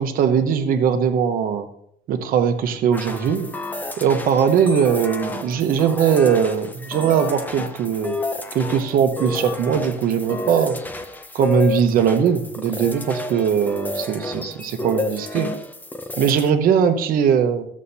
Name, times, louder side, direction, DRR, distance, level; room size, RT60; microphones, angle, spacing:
voice 1, 0.0-1.7 2.1-3.5 4.0-8.2 8.5-10.8 11.3-15.5 16.2-17.7, right 7 dB, 50° right, 6 dB, 1.0 m, -20 dB
sound 1, 2.9-16.5, left 2 dB, 10° left, 0.6 m, -30 dB
14.5 x 7.4 x 2.8 m, 0.71 s
cardioid pair, 170°, 18 cm